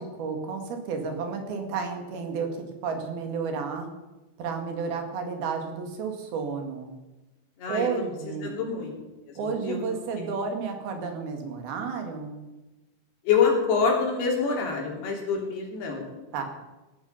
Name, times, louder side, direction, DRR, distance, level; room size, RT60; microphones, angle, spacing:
voice 1, 0.0-2.5 2.8-3.9 4.4-6.9 7.7-8.6 9.4-12.5 16.3-16.4, right 5 dB, 75° right, 4 dB, 4.0 m, -31 dB
voice 2, 8.4-8.9 9.4-9.8 10.2-10.3 13.3-16.1, left 5 dB, 85° left, 0 dB, 5.2 m, -26 dB
17.5 x 12.5 x 5.7 m, 1.1 s
omnidirectional pair, 4.5 m